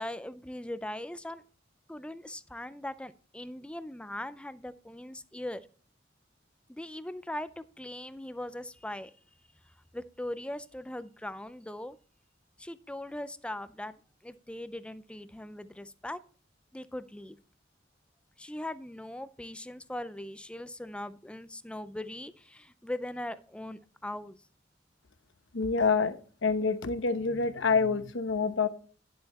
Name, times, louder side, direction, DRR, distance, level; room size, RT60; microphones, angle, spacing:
voice 1, 0.0-1.4 1.9-5.6 6.7-9.1 9.9-12.0 12.6-13.9 14.2-16.2 16.7-17.4 18.4-24.4, left 1 dB, 5° left, 14 dB, 0.4 m, -40 dB
voice 2, 25.5-28.7, left 4 dB, 70° left, 11 dB, 0.9 m, -27 dB
10.0 x 7.8 x 4.1 m, 0.41 s
head